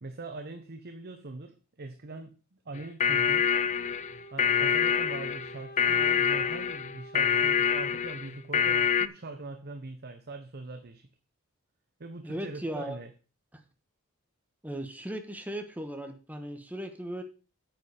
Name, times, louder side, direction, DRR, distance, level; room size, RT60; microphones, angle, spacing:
voice 1, 0.0-2.4 2.6-3.5 4.3-11.1 12.0-13.1, right 3 dB, 50° right, 7 dB, 0.9 m, -42 dB
sound 1, 2.8-9.1, left 8 dB, 35° left, 0.4 m, -26 dB
Wind instrument woodwind instrument, 3.8-8.8, right 1 dB, 50° left, 1.5 m, -48 dB
voice 2, 12.2-13.0 14.6-17.2, right 1 dB, 5° right, 6 dB, 1.3 m, -37 dB
9.0 x 7.9 x 4.9 m, 0.35 s
head